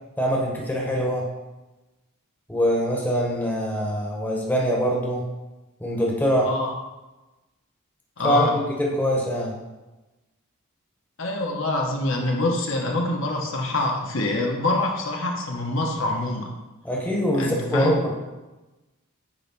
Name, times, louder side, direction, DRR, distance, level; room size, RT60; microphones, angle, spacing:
voice 1, 0.2-1.3 2.5-5.3 5.8-6.5 8.2-9.5 16.8-18.1, equal, 10° left, -2 dB, 1.0 m, -23 dB
voice 2, 6.4-6.7 8.2-8.5 11.2-16.5 17.3-18.0, left 2 dB, 60° left, 0 dB, 1.1 m, -25 dB
8.9 x 3.2 x 6.0 m, 1.1 s
head